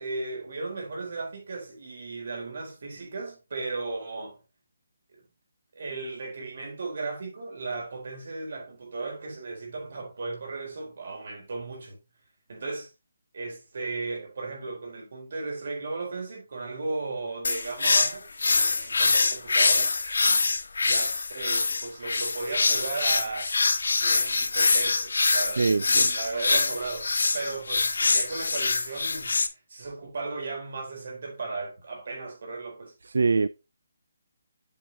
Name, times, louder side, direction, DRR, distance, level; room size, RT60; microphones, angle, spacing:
voice 1, 0.0-4.4 5.7-12.0 12.5-12.9 13.3-18.3 18.6-19.9 20.8-23.5 23.9-29.3 29.7-32.9, right 3 dB, 50° right, 4.0 m, -35 dB
sound 1, 17.4-29.5, left 3 dB, 85° left, 1.2 m, -24 dB
voice 2, 25.6-26.1 33.1-33.5, right 4 dB, 70° right, 0.3 m, -23 dB
7.8 x 7.2 x 2.8 m
hypercardioid pair, 175°, 0 cm